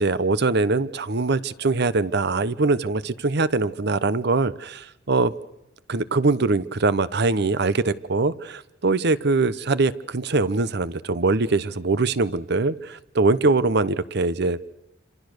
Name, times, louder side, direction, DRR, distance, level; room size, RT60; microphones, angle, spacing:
voice 1, 0.0-5.3 5.9-14.6, right 3 dB, 60° right, 0.9 m, -22 dB
27.0 x 27.0 x 6.6 m
head